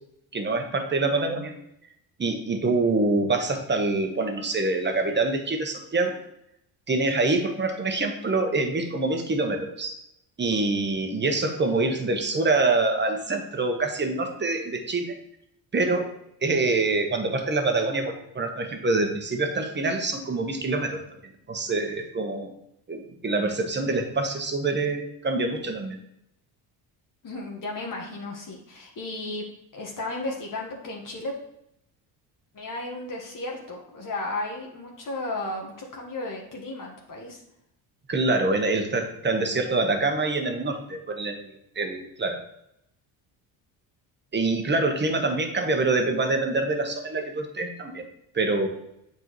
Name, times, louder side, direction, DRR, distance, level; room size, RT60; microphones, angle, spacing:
voice 1, 0.3-1.5 2.2-6.2 6.9-10.0 10.4-15.1 15.7-16.1 16.4-22.5 22.9-26.0 38.1-41.5 41.7-42.4 44.3-48.1 48.3-48.7, right 3 dB, 25° right, 5 dB, 1.2 m, -25 dB
voice 2, 27.2-29.4 29.7-31.3 32.5-37.4, left 2 dB, 45° left, -1 dB, 1.5 m, -34 dB
8.0 x 4.7 x 3.1 m, 0.78 s
supercardioid pair, 80°, 44 cm